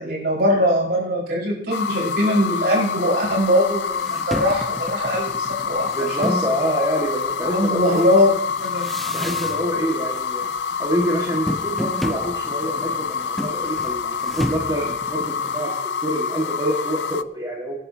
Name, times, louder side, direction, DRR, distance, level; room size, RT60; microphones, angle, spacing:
voice 1, 0.0-5.9 7.4-8.3 8.6-8.9, left 1 dB, 65° right, -3 dB, 5.0 m, -21 dB
sound 1, 1.7-17.2, left 6 dB, 75° left, 0.4 m, -27 dB
sound 2, 3.4-3.5 3.9-6.6 7.2-9.9 10.1-10.7 10.9-15.6, equal, ahead, 0.6 m, -32 dB
voice 2, 5.9-8.1 9.1-10.5 10.8-15.7 16.0-17.7, right 1 dB, 25° right, -3 dB, 1.8 m, -26 dB
22.5 x 11.0 x 2.9 m, 0.83 s
head